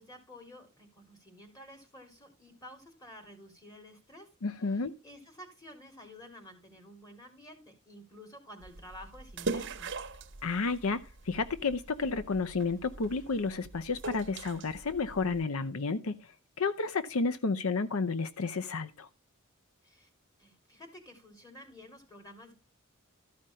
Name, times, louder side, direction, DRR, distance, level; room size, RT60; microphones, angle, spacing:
voice 1, 0.0-4.3 4.6-9.9 19.8-20.1 20.4-22.5, left 1 dB, 15° left, 3.3 m, -51 dB
voice 2, 4.4-4.9 10.4-16.1 16.6-19.1, left 4 dB, 80° left, 0.7 m, -31 dB
sound 1, 8.6-15.4, right 3 dB, 60° right, 1.0 m, -42 dB
13.5 x 5.1 x 5.5 m
head